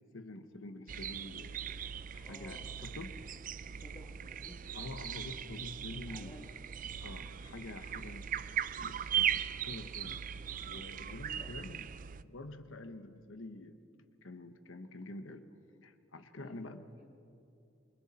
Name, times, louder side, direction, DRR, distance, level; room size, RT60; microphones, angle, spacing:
voice 1, 0.1-1.7 2.1-3.2 4.7-6.4 7.0-10.2 10.6-11.9 12.2-13.8 14.2-15.5 15.8-16.8, left 2 dB, 70° left, 9 dB, 1.2 m, -47 dB
sound 1, 0.9-12.2, right 9 dB, 40° right, 0.4 m, -39 dB
voice 2, 2.2-2.8 3.8-4.6 6.1-6.5 11.0-11.8 16.4-17.1, left 1 dB, 20° left, 0 dB, 1.6 m, -55 dB
29.0 x 24.0 x 4.3 m, 2.6 s
head